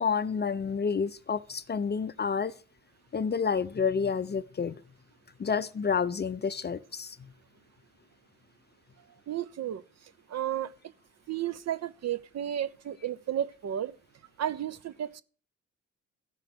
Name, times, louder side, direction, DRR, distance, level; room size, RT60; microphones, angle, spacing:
voice 1, 0.0-2.6 3.1-4.8 5.4-7.3, left 6 dB, 25° left, 0.6 m, -29 dB
voice 2, 9.3-9.8 10.3-10.7 11.3-13.9 14.4-15.2, right 11 dB, 40° right, 0.6 m, -32 dB
13.5 x 5.8 x 6.6 m
hypercardioid pair, 45°, 40 cm